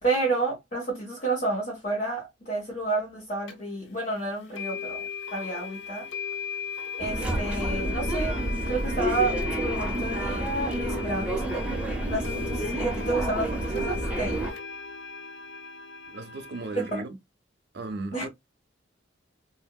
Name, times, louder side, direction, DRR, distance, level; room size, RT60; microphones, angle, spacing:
voice 1, 0.0-6.1 7.0-11.8 12.1-14.4 16.7-17.0 18.1-18.2, right 3 dB, 45° left, 1.2 m, -30 dB
sound 1, 3.5-3.6 4.6-17.0, left 7 dB, 65° left, 0.5 m, -37 dB
sound 2, 7.0-14.5, right 1 dB, 5° right, 0.5 m, -29 dB
voice 2, 16.1-17.2 17.7-18.3, right 3 dB, 60° right, 0.5 m, -36 dB
2.8 x 2.6 x 2.2 m
head